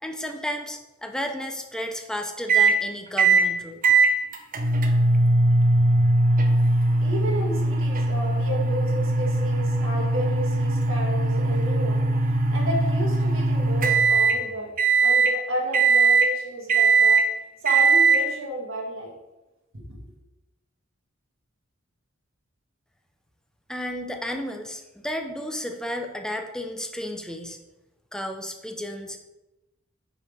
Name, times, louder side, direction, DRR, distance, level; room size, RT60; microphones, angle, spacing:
voice 1, 0.0-3.8 23.7-27.6 28.1-29.2, equal, 5° left, 4 dB, 0.5 m, -33 dB
sound 1, 2.5-2.8 3.2-3.5 3.8-14.4 14.8-15.3 15.7-16.3 16.7-17.3 17.7-18.2, right 3 dB, 45° right, 0.6 m, -20 dB
voice 2, 7.0-12.0 12.2-14.7 15.0-17.2 17.6-19.1 19.7-20.0, right 1 dB, 70° right, -2 dB, 1.7 m, -32 dB
6.3 x 4.9 x 3.5 m, 1.0 s
head